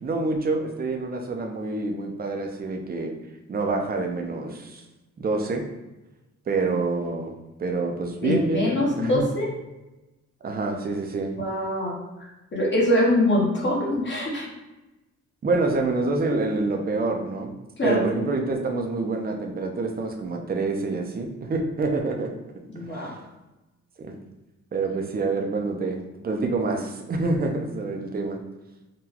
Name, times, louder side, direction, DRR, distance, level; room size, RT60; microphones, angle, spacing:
voice 1, 0.0-3.1 3.5-4.8 5.2-5.6 6.5-7.3 7.6-9.2 10.4-11.3 15.4-17.5 17.8-22.3 22.8-23.1 24.0-24.1 24.7-26.0 26.2-28.4, right 3 dB, 30° right, 3 dB, 0.4 m, -27 dB
voice 2, 8.2-9.5 11.4-14.5 17.8-18.0 22.7-23.1, left 1 dB, 40° left, -4 dB, 0.8 m, -24 dB
3.8 x 2.2 x 2.8 m, 1.0 s
wide cardioid pair, 145°, 30 cm